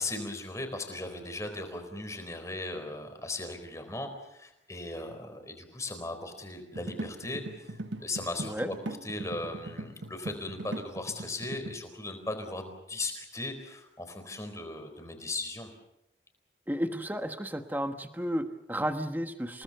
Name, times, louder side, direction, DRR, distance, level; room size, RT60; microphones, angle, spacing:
voice 1, 0.0-8.7 9.0-15.7, left 2 dB, 15° left, 6 dB, 4.2 m, -37 dB
sound 1, 6.7-11.8, right 1 dB, 70° right, 1.4 m, -40 dB
voice 2, 16.7-19.6, equal, 10° right, 7 dB, 1.3 m, -32 dB
29.0 x 18.5 x 6.8 m, 0.86 s
head